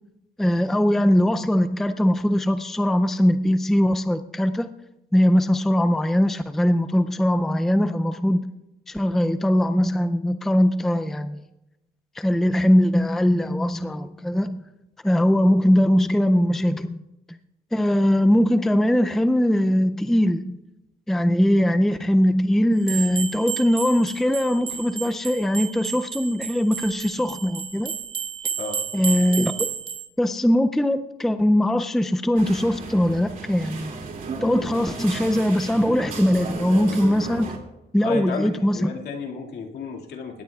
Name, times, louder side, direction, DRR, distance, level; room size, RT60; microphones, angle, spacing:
voice 1, 0.4-4.7 5.1-8.4 8.9-11.4 12.2-14.6 15.0-17.0 17.3-17.4 17.7-20.6 21.1-27.9 28.9-29.7 30.2-33.9 34.4-37.6 37.9-38.9, equal, ahead, 9 dB, 0.4 m, -21 dB
sound 1, 22.8-30.1, right 8 dB, 30° right, 1.5 m, -32 dB
voice 2, 28.6-28.9 38.0-40.4, left 4 dB, 65° left, 2 dB, 2.2 m, -32 dB
sound 2, 32.4-37.6, right 4 dB, 50° right, 2.4 m, -34 dB
21.5 x 18.5 x 2.3 m, 0.94 s
cardioid pair, 155°, 18 cm